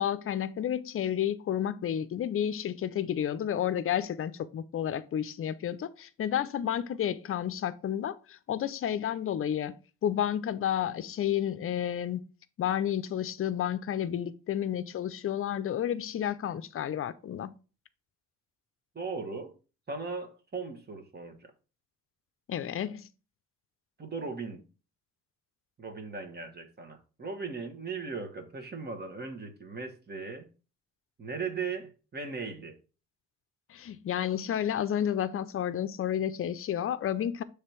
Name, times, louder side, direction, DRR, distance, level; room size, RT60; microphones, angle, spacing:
voice 1, 0.0-9.8 10.0-12.3 12.6-17.5 22.5-23.1 33.7-37.4, left 10 dB, 45° left, 0.6 m, -31 dB
voice 2, 18.9-19.5 19.9-21.5 24.0-24.6 25.8-30.4 31.2-32.7, right 4 dB, 30° right, 1.4 m, -38 dB
6.5 x 3.4 x 4.4 m
cardioid pair, 100°, 31 cm